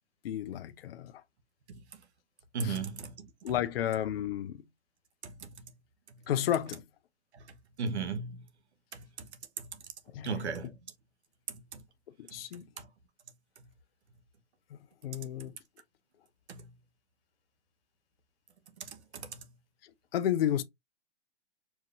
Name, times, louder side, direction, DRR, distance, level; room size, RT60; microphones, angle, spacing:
voice 1, 0.2-1.2 2.6-2.8 3.4-4.6 6.3-6.8 10.1-10.3 12.2-12.7 15.0-15.5 19.8-20.6, left 11 dB, 55° left, 0.7 m, -32 dB
voice 2, 2.5-3.5 5.2-5.7 6.1-6.2 7.3-8.5 8.9-9.3 9.6-9.8 10.2-10.8 11.5-11.8 12.3-12.9 15.4-15.5 16.5-16.7 18.8-19.5, right 4 dB, 70° right, 1.2 m, -38 dB
4.6 x 2.7 x 3.4 m
hypercardioid pair, 140°, 34 cm